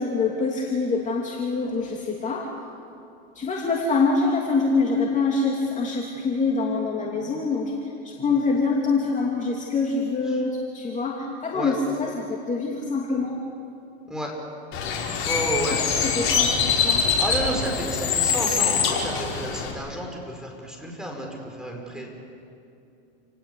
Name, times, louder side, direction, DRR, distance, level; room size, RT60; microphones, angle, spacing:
voice 1, 0.0-2.5 3.3-7.7 8.0-13.4 15.6-17.0, left 4 dB, 20° left, -1 dB, 2.8 m, -25 dB
Bird, 14.7-19.7, left 6 dB, 40° left, 5.0 m, -24 dB
voice 2, 15.3-15.8 17.2-20.4 20.6-21.3 21.6-22.1, right 1 dB, ahead, 0 dB, 5.7 m, -31 dB
28.5 x 18.5 x 8.4 m, 2.7 s
hypercardioid pair, 115°, 34 cm